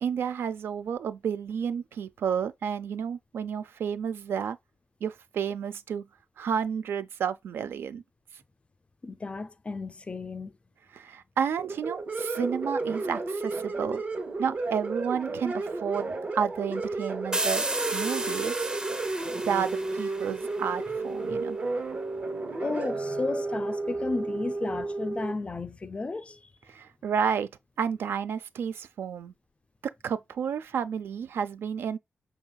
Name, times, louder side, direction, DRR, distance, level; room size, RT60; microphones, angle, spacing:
voice 1, 0.0-4.6 5.0-6.1 6.4-8.0 10.9-14.0 14.4-17.6 17.9-18.7 19.4-21.6 26.7-27.5 27.8-29.3 29.8-32.0, right 7 dB, 85° right, 0.4 m, -31 dB
voice 2, 9.0-10.5 21.3-21.4 22.6-26.4, left 3 dB, 30° left, 0.4 m, -33 dB
electric guitar distortion, 11.6-25.3, right 3 dB, 45° right, 0.9 m, -32 dB
sound 1, 17.3-20.9, right 2 dB, 20° right, 0.6 m, -33 dB
5.5 x 3.2 x 2.2 m
cardioid pair, 70°, 4 cm